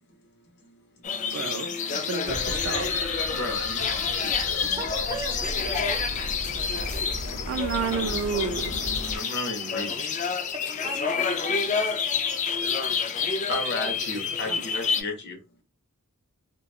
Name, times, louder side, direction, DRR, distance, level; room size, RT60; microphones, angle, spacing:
voice 1, 0.1-1.4 3.3-4.7 9.1-10.5 12.7-15.6, left 2 dB, 50° left, 0.7 m, -36 dB
sound 1, 1.0-15.0, left 6 dB, 35° left, 0.3 m, -28 dB
voice 2, 1.3-2.9 7.5-8.7 14.5-14.6, right 5 dB, 55° right, 0.3 m, -30 dB
sound 2, 2.2-9.2, left 1 dB, 90° left, 0.8 m, -36 dB
voice 3, 4.6-6.3 10.5-11.9, right 1 dB, 15° right, 0.6 m, -39 dB
2.8 x 2.2 x 2.3 m
head